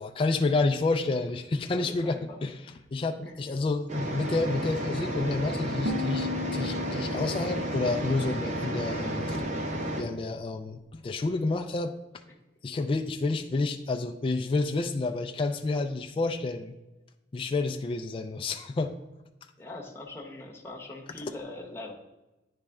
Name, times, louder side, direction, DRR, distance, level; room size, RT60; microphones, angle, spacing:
voice 1, 0.0-2.6 2.9-9.4 10.0-11.9 12.6-16.7 17.3-18.9, left 3 dB, 30° left, 4 dB, 0.3 m, -29 dB
voice 2, 1.7-2.4 3.2-3.3 19.6-21.9, left 2 dB, 15° left, -2 dB, 0.8 m, -41 dB
sound 1, 3.9-10.0, right 1 dB, 40° right, 0.8 m, -32 dB
sound 2, 5.9-8.9, left 3 dB, 80° right, 0.5 m, -36 dB
9.6 x 3.3 x 3.5 m, 1.0 s
head